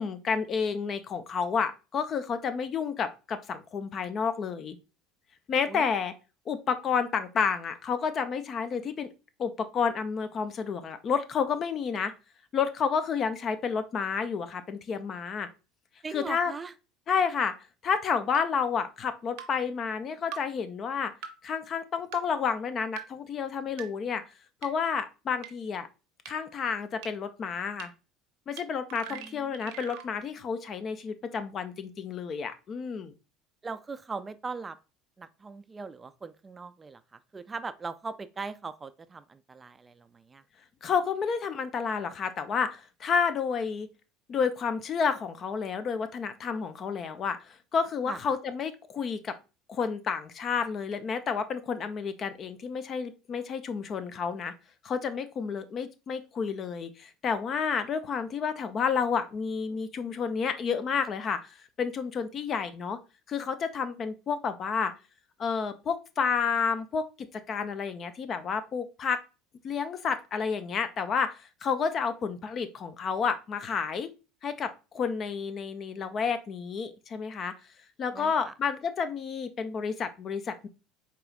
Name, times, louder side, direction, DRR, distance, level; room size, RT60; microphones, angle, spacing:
voice 1, 0.0-4.8 5.5-6.1 6.5-9.1 9.4-12.1 12.5-15.5 16.1-16.5 17.1-17.5 17.8-21.1 21.4-24.2 24.6-25.9 26.3-27.9 28.5-33.1 40.8-43.9 44.3-49.3 49.7-54.5 54.8-63.0 63.3-64.9 65.4-69.2 69.6-74.1 74.4-77.5 78.0-80.7, left 6 dB, 40° left, 0.5 m, -30 dB
voice 2, 16.0-16.7 29.1-29.8 33.6-34.8 35.2-37.0 37.3-40.4 48.1-48.2 78.1-78.5, right 4 dB, 25° right, 0.3 m, -40 dB
sound 1, 18.3-18.4 19.4-19.5 20.3-20.4 21.2-21.3 22.1-22.2 23.0-23.1 23.8-23.9 24.6-24.7 25.4-25.5 26.3-26.4 27.0-27.1 27.8-27.9 28.6-28.7 28.9-30.1, right 8 dB, 65° right, 0.6 m, -40 dB
4.6 x 3.0 x 2.4 m
hypercardioid pair, 70°, 0 cm